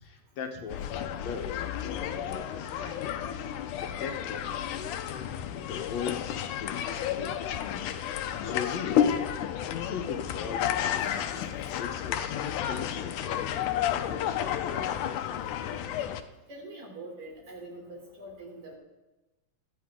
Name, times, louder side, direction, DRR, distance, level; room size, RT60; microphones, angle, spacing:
voice 1, 0.0-4.7 5.6-9.2 9.7-13.4 13.9-15.1, left 6 dB, 65° left, 4 dB, 2.1 m, -40 dB
sound 1, 0.7-16.2, left 9 dB, 85° left, 2.3 m, -31 dB
voice 2, 16.5-18.8, right 2 dB, 60° right, -1 dB, 4.7 m, -44 dB
17.5 x 14.0 x 3.7 m, 1.0 s
omnidirectional pair, 3.6 m